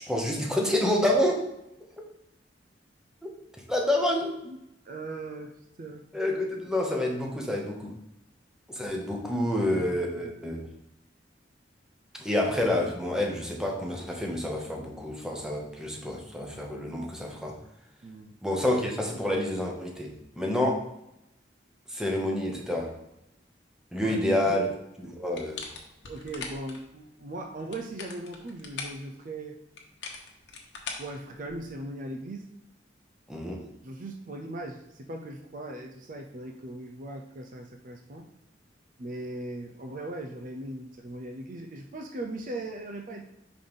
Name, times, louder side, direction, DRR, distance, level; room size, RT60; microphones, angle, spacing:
voice 1, 0.1-1.4 3.2-3.3 3.7-4.3 6.1-7.9 8.7-10.7 12.2-17.5 18.4-20.8 21.9-22.9 23.9-24.7 25.0-25.6 33.3-33.6, left 1 dB, 5° right, 0 dB, 1.0 m, -28 dB
voice 2, 4.9-5.5 5.8-6.1 9.5-10.4 18.0-18.3 24.0-24.7 26.1-29.6 31.0-32.4 33.8-38.3 39.0-43.2, right 1 dB, 45° right, 4 dB, 0.5 m, -39 dB
sound 1, 25.3-26.8 27.6-29.0 29.8-31.8, left 4 dB, 70° left, 1.1 m, -41 dB
5.2 x 4.0 x 5.4 m, 0.85 s
head